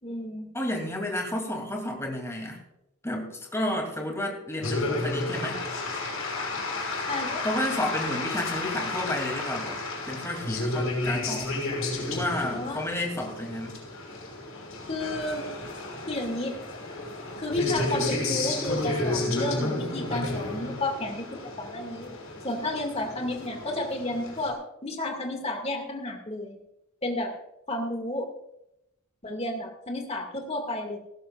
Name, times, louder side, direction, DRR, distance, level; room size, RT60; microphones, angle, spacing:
voice 1, 0.0-0.4 7.1-7.4 12.5-12.8 14.9-15.5 16.1-16.6 17.4-22.1 22.4-26.6 27.0-27.3 27.7-28.3 29.2-31.0, left 1 dB, 30° left, 3 dB, 2.2 m, -32 dB
voice 2, 0.5-2.6 3.0-5.6 7.4-9.8 10.0-11.5 12.0-13.8, left 1 dB, 15° left, 1 dB, 2.9 m, -31 dB
sound 1, 4.6-24.5, left 2 dB, 70° left, 6.1 m, -32 dB
18.0 x 15.0 x 2.5 m, 0.84 s
head